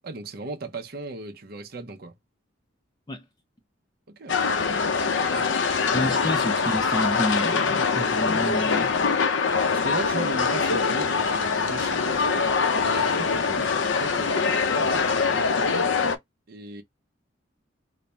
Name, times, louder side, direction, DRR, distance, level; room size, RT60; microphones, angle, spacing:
voice 1, 0.0-2.1 4.1-4.4 4.9-5.6 9.7-12.5 12.8-15.5 16.5-16.8, right 2 dB, 50° right, 0.6 m, -37 dB
sound 1, 4.3-16.2, left 5 dB, 75° left, 0.6 m, -23 dB
voice 2, 5.9-8.9, left 1 dB, 20° left, 0.4 m, -29 dB
4.1 x 2.0 x 3.3 m
head